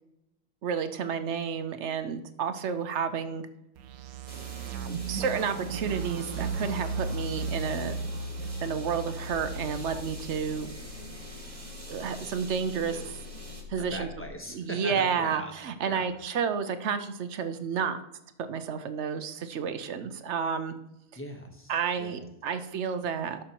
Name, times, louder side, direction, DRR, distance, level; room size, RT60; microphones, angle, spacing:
voice 1, 0.6-3.5 5.1-8.0 8.6-10.7 11.9-13.0 13.7-14.1 14.5-18.0 18.4-20.7 21.7-23.4, right 6 dB, 60° right, 10 dB, 0.9 m, -31 dB
sound 1, 3.8-10.0, right 4 dB, 85° right, 1.1 m, -35 dB
sound 2, 4.3-13.6, right 1 dB, 25° right, 1.5 m, -45 dB
sound 3, 9.3-14.3, left 6 dB, 70° left, 0.9 m, -45 dB
voice 2, 13.8-15.5 15.8-16.1 21.1-22.2, equal, 10° left, 2 dB, 1.1 m, -40 dB
11.5 x 6.3 x 2.9 m, 0.86 s
omnidirectional pair, 1.5 m